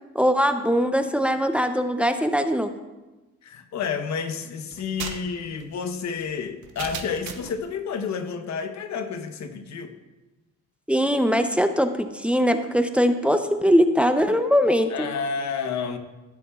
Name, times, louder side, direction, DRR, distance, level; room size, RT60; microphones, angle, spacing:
voice 1, 0.1-2.7 10.9-15.1, equal, 5° right, 7 dB, 0.6 m, -21 dB
voice 2, 3.4-9.9 14.9-16.0, left 6 dB, 65° left, 7 dB, 1.0 m, -30 dB
sound 1, 4.7-7.6, right 8 dB, 80° right, 0.9 m, -37 dB
15.0 x 7.0 x 2.4 m, 1.1 s
cardioid pair, 90°, 30 cm